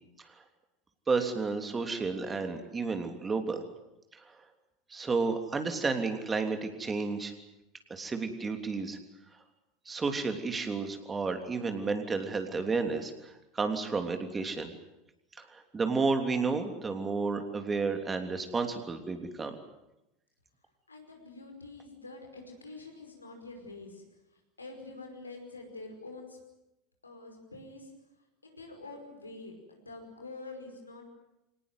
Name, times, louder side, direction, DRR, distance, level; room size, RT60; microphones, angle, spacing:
voice 1, 1.1-3.6 4.9-7.3 7.9-9.0 9.9-14.7 15.4-19.5, right 4 dB, 20° right, 6 dB, 3.3 m, -31 dB
voice 2, 20.9-24.0 24.6-26.4 27.0-27.9 28.4-31.1, left 3 dB, 85° left, 3 dB, 5.2 m, -46 dB
25.0 x 19.0 x 9.3 m, 0.93 s
figure-of-eight pair, 75°, 0 cm